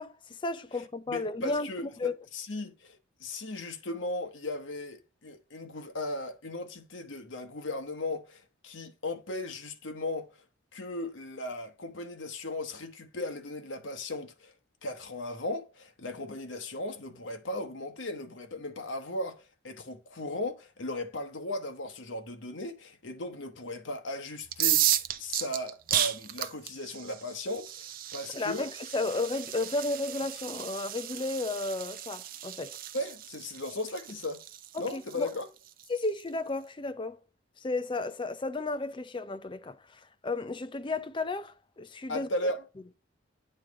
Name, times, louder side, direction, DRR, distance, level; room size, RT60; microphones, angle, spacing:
voice 1, 0.0-1.7 2.0-2.1 28.3-32.8 34.7-35.3 35.9-37.2 37.6-42.3, left 2 dB, 25° left, 0.5 m, -33 dB
voice 2, 1.1-10.3 10.7-14.5 14.8-28.7 32.9-34.4 34.8-35.5 42.1-42.6, left 2 dB, 75° left, 1.1 m, -37 dB
sound 1, 24.5-36.2, right 12 dB, 45° right, 0.5 m, -34 dB
8.8 x 3.1 x 4.8 m
head